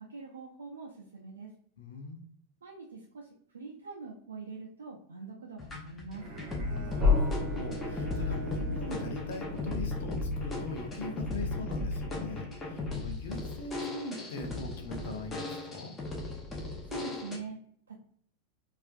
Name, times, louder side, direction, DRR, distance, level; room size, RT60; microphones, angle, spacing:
voice 1, 0.1-1.5 2.6-3.3 3.5-6.3 16.9-17.6 17.9-18.0, right 4 dB, 70° right, -1 dB, 0.5 m, -44 dB
voice 2, 1.8-2.2 6.6-15.9, left 3 dB, 55° left, 4 dB, 0.6 m, -41 dB
sound 1, 5.6-17.4, left 2 dB, 15° left, 0.8 m, -36 dB
Bowed string instrument, 6.1-10.4, right 2 dB, 40° right, 1.0 m, -45 dB
sound 2, 7.0-11.7, left 3 dB, 20° right, 1.2 m, -32 dB
4.3 x 2.5 x 2.4 m, 0.62 s
figure-of-eight pair, 90°, 0 cm